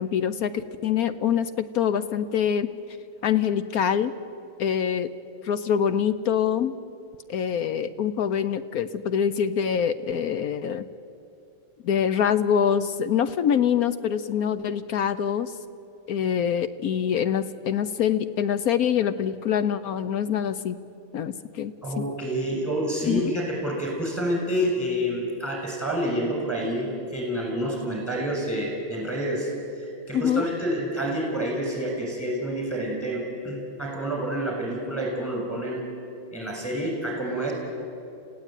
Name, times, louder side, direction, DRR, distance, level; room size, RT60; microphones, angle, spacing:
voice 1, 0.0-2.7 3.2-4.1 4.6-5.1 5.4-6.7 7.3-10.9 11.8-15.5 16.1-20.8 21.1-22.0 23.0-23.3 30.1-30.5, left 8 dB, 70° left, 13 dB, 0.8 m, -25 dB
voice 2, 21.8-35.8 36.3-37.5, equal, 5° left, -1 dB, 6.9 m, -28 dB
27.5 x 16.5 x 9.1 m, 2.7 s
omnidirectional pair, 2.3 m